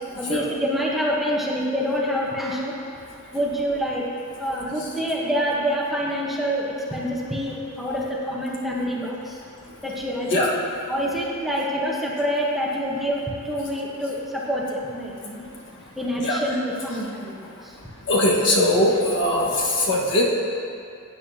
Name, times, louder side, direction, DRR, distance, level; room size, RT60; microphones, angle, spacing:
voice 1, 0.2-2.9 3.3-4.1 4.4-9.4 9.8-10.5 10.9-15.5 16.0-17.8, equal, ahead, -4 dB, 1.0 m, -26 dB
voice 2, 18.1-20.2, left 1 dB, 55° left, -3 dB, 1.4 m, -20 dB
16.0 x 8.5 x 2.8 m, 2.5 s
head